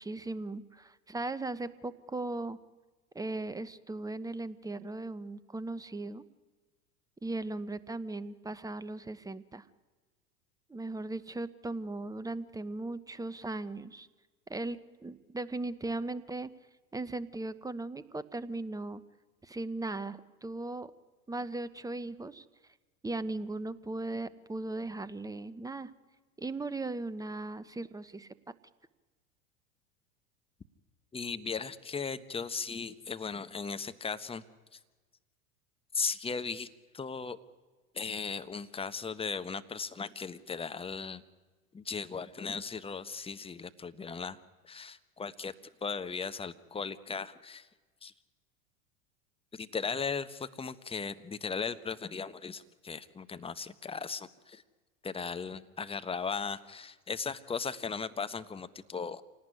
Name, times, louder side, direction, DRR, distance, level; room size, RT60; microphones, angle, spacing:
voice 1, 0.0-2.6 3.1-6.2 7.2-9.6 10.7-14.1 14.5-16.5 16.9-19.0 19.4-20.9 21.3-22.4 23.0-25.9 26.4-28.3, right 2 dB, 10° right, 17 dB, 1.0 m, -38 dB
voice 2, 31.1-34.4 34.7-34.8 35.9-36.7 36.9-37.4 37.9-41.2 41.7-44.4 44.6-45.5 45.8-47.7 48.0-48.1 49.5-54.6 55.0-59.2, left 5 dB, 10° left, 12 dB, 1.2 m, -37 dB
26.5 x 18.5 x 9.9 m, 1.3 s
hypercardioid pair, 95°, 45 cm